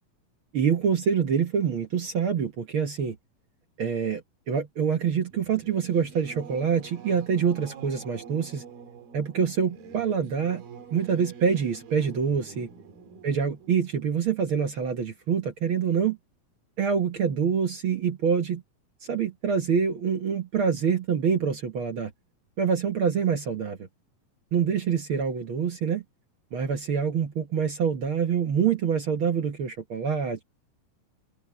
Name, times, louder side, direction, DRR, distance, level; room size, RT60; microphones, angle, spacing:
voice 1, 0.5-3.2 3.8-4.2 4.5-8.6 9.1-10.6 10.9-12.7 13.2-16.2 16.8-18.6 19.1-22.1 22.6-23.9 24.5-26.0 26.5-30.4, right 7 dB, 65° right, 1.3 m, -26 dB
Singing / Musical instrument, 5.3-15.4, right 6 dB, 85° right, 4.2 m, -47 dB
open air
omnidirectional pair, 4.1 m